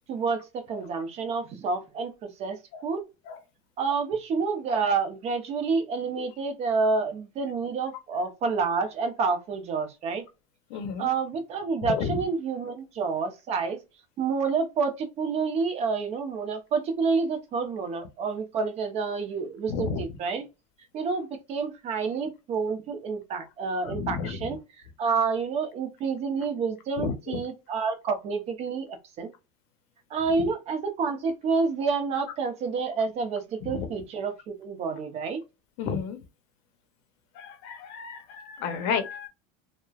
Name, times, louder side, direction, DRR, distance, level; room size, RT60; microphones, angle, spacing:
voice 1, 0.1-3.0 3.8-10.2 11.0-13.8 14.2-20.5 20.9-24.6 25.0-29.3 30.1-34.3 34.6-35.4, right 4 dB, 35° right, 0.7 m, -28 dB
voice 2, 10.7-11.1 11.9-12.2 19.7-20.0 23.8-24.5 27.0-27.4 33.6-33.9 35.8-36.2 37.3-39.3, left 6 dB, 60° left, 0.7 m, -32 dB
3.0 x 2.1 x 2.3 m
supercardioid pair, 150°, 18 cm